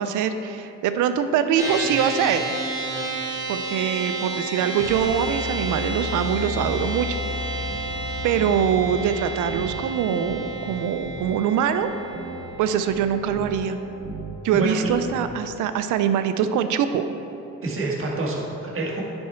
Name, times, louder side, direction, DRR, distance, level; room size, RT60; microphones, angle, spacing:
voice 1, 0.0-2.4 3.5-7.1 7.5-7.8 8.2-11.9 12.6-13.8 14.4-17.0, right 8 dB, 85° right, 10 dB, 0.5 m, -23 dB
sound 1, 1.6-15.1, right 2 dB, 10° right, 1.6 m, -32 dB
sound 2, 4.7-10.8, left 4 dB, 30° left, 0.8 m, -34 dB
sound 3, 6.5-7.0 7.3-9.2 9.5-10.0 10.3-10.7 11.0-11.3 11.8-11.9 12.1-14.5 14.8-15.3, right 5 dB, 65° right, 0.9 m, -39 dB
voice 2, 14.5-14.9 17.6-19.0, right 2 dB, 45° right, -3 dB, 1.6 m, -27 dB
9.8 x 4.4 x 4.4 m, 3.0 s
cardioid pair, 90°, 30 cm